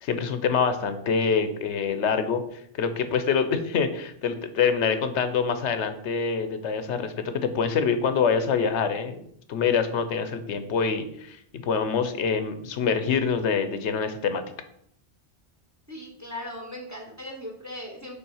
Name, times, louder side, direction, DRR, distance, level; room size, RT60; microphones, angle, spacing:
voice 1, 0.0-9.2 9.5-14.4, left 6 dB, 85° left, 10 dB, 1.0 m, -25 dB
voice 2, 15.9-18.2, left 1 dB, 15° right, 2 dB, 1.0 m, -38 dB
5.5 x 4.0 x 5.5 m, 0.69 s
omnidirectional pair, 1.1 m